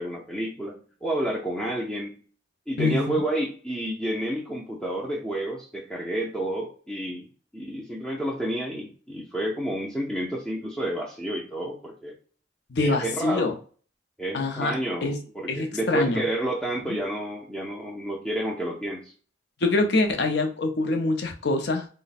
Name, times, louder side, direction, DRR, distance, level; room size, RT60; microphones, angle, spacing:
voice 1, 0.0-2.2 2.7-7.3 7.5-12.1 12.8-13.5 14.2-19.1, right 1 dB, 5° left, -4 dB, 0.5 m, -30 dB
voice 2, 2.8-3.2 12.7-13.5 14.3-16.2 16.9-17.0 19.6-21.9, left 2 dB, 65° left, 5 dB, 0.6 m, -25 dB
3.1 x 2.1 x 4.1 m, 0.40 s
head